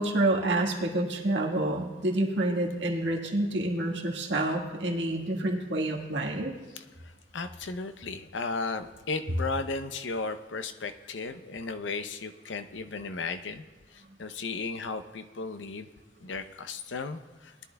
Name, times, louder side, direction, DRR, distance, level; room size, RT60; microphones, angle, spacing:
voice 1, 0.0-6.5, right 1 dB, 80° right, 0 dB, 1.7 m, -28 dB
voice 2, 7.3-13.6 13.9-15.9 16.2-17.5, left 4 dB, 85° left, 9 dB, 0.6 m, -35 dB
20.0 x 11.0 x 2.3 m, 1.2 s
head